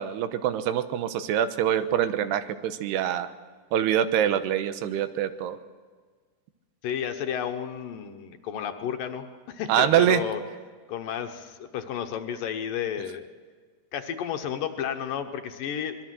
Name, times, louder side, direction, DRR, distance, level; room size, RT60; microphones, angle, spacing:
voice 1, 0.0-3.3 3.7-5.6 9.7-10.2, right 10 dB, 90° right, 11 dB, 3.1 m, -24 dB
voice 2, 6.8-10.4 10.9-13.3 13.9-16.0, left 8 dB, 65° left, 6 dB, 2.5 m, -32 dB
24.5 x 21.5 x 7.7 m, 1.5 s
omnidirectional pair, 4.7 m